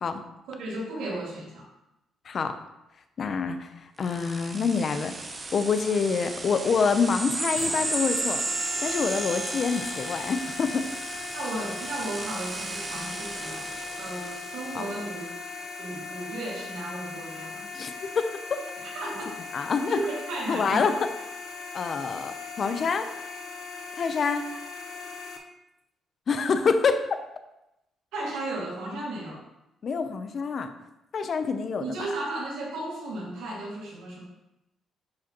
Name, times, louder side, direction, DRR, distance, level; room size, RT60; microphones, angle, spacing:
voice 1, 0.5-1.7 11.3-13.7 14.0-15.3 15.8-17.7 18.9-19.3 19.9-20.8 22.0-22.1 28.1-29.4 31.8-34.2, right 2 dB, 90° right, -3 dB, 2.3 m, -34 dB
voice 2, 2.2-2.6 3.2-5.1 5.5-8.4 8.8-10.9 14.7-14.9 17.7-18.6 19.5-20.0 20.5-20.9 21.7-23.1 24.0-24.5 26.3-27.0 29.8-30.7 31.1-31.8, left 5 dB, 50° left, 9 dB, 0.6 m, -26 dB
sound 1, 4.0-15.1, right 3 dB, 30° right, 0.8 m, -34 dB
sound 2, 7.5-25.4, left 4 dB, 90° left, 0.8 m, -39 dB
10.5 x 4.8 x 3.0 m, 0.90 s
cardioid pair, 90°, 0 cm